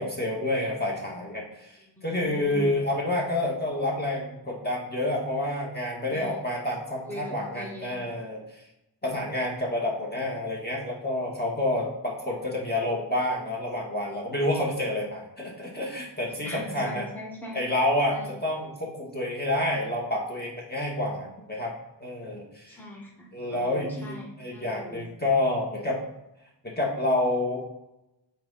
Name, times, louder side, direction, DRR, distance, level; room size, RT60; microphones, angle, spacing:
voice 1, 0.0-8.6 9.0-17.1 17.5-21.7 22.0-22.8 23.3-26.0 26.6-27.6, left 1 dB, 20° left, -3 dB, 1.8 m, -29 dB
voice 2, 2.0-2.8 6.1-6.4 7.0-8.0 16.4-17.6 18.1-18.3 22.7-25.0, left 1 dB, 5° left, -3 dB, 1.8 m, -41 dB
5.9 x 4.4 x 4.2 m, 0.90 s
cardioid pair, 65°, 44 cm